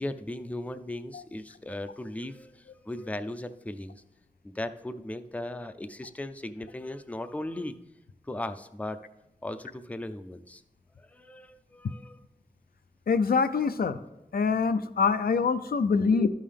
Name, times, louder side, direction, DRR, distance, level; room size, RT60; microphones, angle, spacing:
voice 1, 0.0-2.5 2.9-4.0 4.6-7.7 8.3-9.0 9.4-10.6 11.1-12.2 16.0-16.2, left 1 dB, 10° left, 9 dB, 0.4 m, -37 dB
voice 2, 13.1-14.0 14.3-16.3, left 5 dB, 80° left, 10 dB, 0.4 m, -24 dB
12.5 x 5.5 x 3.4 m, 0.96 s
wide cardioid pair, 55°, 15 cm